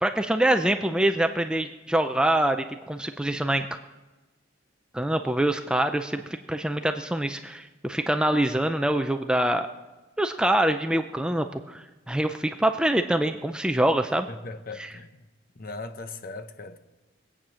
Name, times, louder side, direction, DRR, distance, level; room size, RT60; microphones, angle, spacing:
voice 1, 0.0-3.7 4.9-9.7 10.2-14.3 14.8-14.9, right 1 dB, 5° right, 0.4 m, -25 dB
voice 2, 14.3-15.3 15.6-16.8, left 3 dB, 45° left, 0.8 m, -39 dB
21.5 x 8.7 x 6.2 m
head